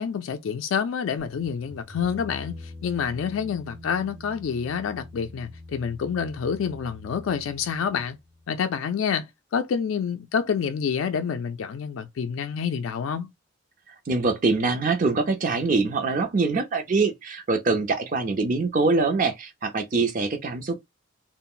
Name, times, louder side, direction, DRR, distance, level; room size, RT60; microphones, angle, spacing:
voice 1, 0.0-8.2 8.5-13.3, left 7 dB, 80° left, 0.3 m, -28 dB
sound 1, 1.2-8.6, left 2 dB, 20° left, 0.4 m, -44 dB
voice 2, 14.1-20.8, right 3 dB, 40° right, 0.4 m, -24 dB
2.4 x 2.0 x 3.7 m
head